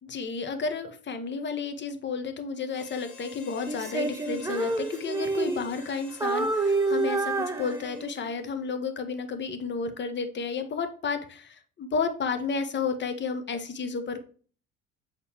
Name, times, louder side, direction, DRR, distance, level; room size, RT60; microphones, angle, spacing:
voice 1, 0.0-14.2, left 5 dB, 30° left, 8 dB, 1.0 m, -32 dB
Harmonica, 2.7-8.3, left 4 dB, 50° left, 1.7 m, -49 dB
Female singing, 3.7-5.9 6.2-8.3, right 3 dB, 10° right, 0.4 m, -28 dB
7.2 x 4.0 x 3.5 m, 0.43 s
hypercardioid pair, 60°, 37 cm